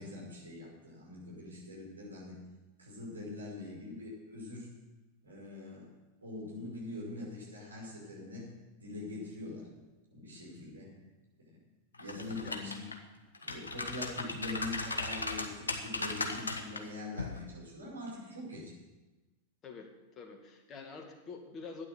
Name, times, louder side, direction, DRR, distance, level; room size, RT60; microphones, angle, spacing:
voice 1, 0.0-2.4 2.8-4.7 5.2-5.9 6.2-8.5 8.8-9.7 10.1-10.9 12.0-12.9 13.4-18.7, left 2 dB, 75° right, -5 dB, 5.8 m, -43 dB
sound 1, 12.0-12.9 13.3-16.8 17.2-17.4, left 3 dB, 75° left, 1.3 m, -37 dB
voice 2, 19.6-21.9, left 4 dB, 30° left, 3 dB, 2.2 m, -47 dB
12.5 x 9.7 x 6.9 m, 1.2 s
figure-of-eight pair, 90°, 0 cm